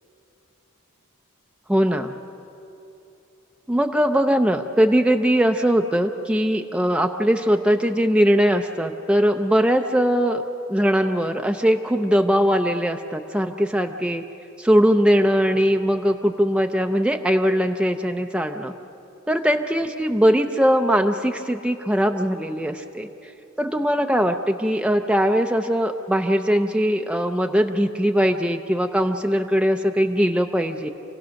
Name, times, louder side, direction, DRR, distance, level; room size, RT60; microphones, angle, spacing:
voice 1, 1.7-2.1 3.7-10.4 10.7-14.2 14.6-18.7 19.3-23.3 23.6-30.9, equal, 5° right, 4 dB, 0.6 m, -20 dB
27.5 x 17.0 x 6.4 m, 2.9 s
head